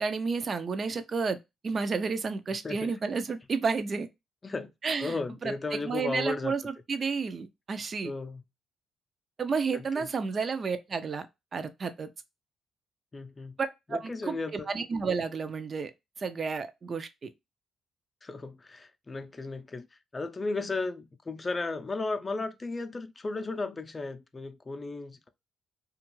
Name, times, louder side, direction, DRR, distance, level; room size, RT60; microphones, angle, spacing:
voice 1, 0.0-1.4 1.6-4.1 4.8-5.2 5.4-8.1 9.4-11.3 11.5-12.1 13.6-15.9 16.2-17.3, right 5 dB, 45° right, 0.4 m, -31 dB
voice 2, 5.0-6.6 8.0-8.4 9.7-10.1 13.1-13.6 13.9-14.7 18.2-25.3, left 3 dB, 30° left, 0.5 m, -35 dB
2.5 x 2.3 x 3.0 m
supercardioid pair, 65°, 0 cm